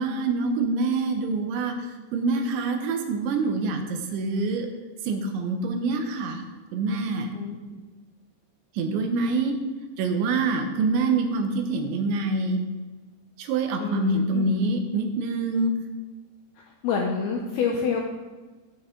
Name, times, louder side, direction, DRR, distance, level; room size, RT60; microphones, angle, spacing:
voice 1, 0.0-4.7 5.0-6.4 6.7-7.3 8.7-9.6 10.0-12.6 13.4-15.7, right 3 dB, 75° right, 4 dB, 3.1 m, -26 dB
voice 2, 13.8-14.5 16.8-18.0, left 6 dB, 85° left, 1 dB, 2.2 m, -27 dB
11.5 x 8.9 x 3.7 m, 1.3 s
omnidirectional pair, 5.5 m